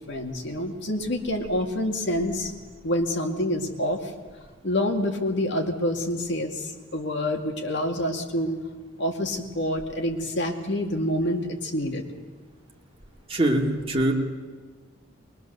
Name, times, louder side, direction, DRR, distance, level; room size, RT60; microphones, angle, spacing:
voice 1, 0.1-2.5 2.8-4.1 4.6-8.6 9.0-12.0, left 1 dB, 60° left, 3 dB, 2.2 m, -27 dB
voice 2, 13.3-14.1, right 1 dB, 25° right, 0 dB, 2.4 m, -23 dB
22.0 x 21.5 x 6.8 m, 1.4 s
head